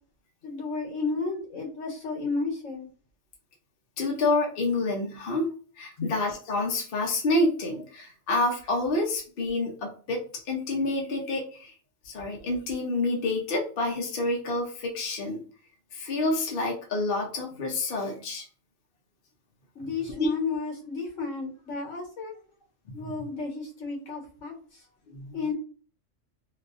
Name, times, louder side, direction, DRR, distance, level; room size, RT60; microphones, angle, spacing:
voice 1, 0.4-2.9 6.0-6.1 19.7-22.4 22.9-24.5 25.3-25.5, left 4 dB, 70° left, 1.5 m, -32 dB
voice 2, 4.0-5.4 5.8-10.2 10.5-11.7 12.0-15.4 15.9-18.4 20.2-20.3 25.1-25.3, left 2 dB, 50° left, 0.9 m, -28 dB
3.2 x 2.5 x 2.4 m
omnidirectional pair, 1.3 m